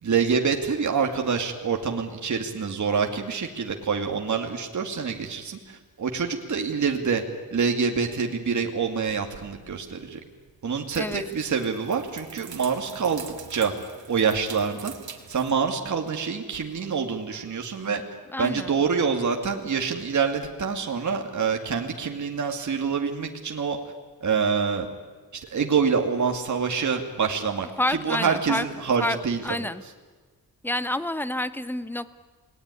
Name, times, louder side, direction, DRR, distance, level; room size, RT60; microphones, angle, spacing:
voice 1, 0.0-7.2 7.5-10.2 10.6-13.7 14.1-14.9 15.3-18.0 18.4-23.8 24.2-24.9 25.3-29.4, right 6 dB, 50° right, 3 dB, 2.4 m, -26 dB
sound 1, 8.9-15.5, right 7 dB, 75° right, 2.8 m, -44 dB
voice 2, 18.3-18.7 27.8-28.7 29.0-29.2 29.4-29.8 30.6-32.1, left 1 dB, 5° left, 13 dB, 1.0 m, -28 dB
28.5 x 20.0 x 9.8 m, 1.4 s
wide cardioid pair, 130°, 37 cm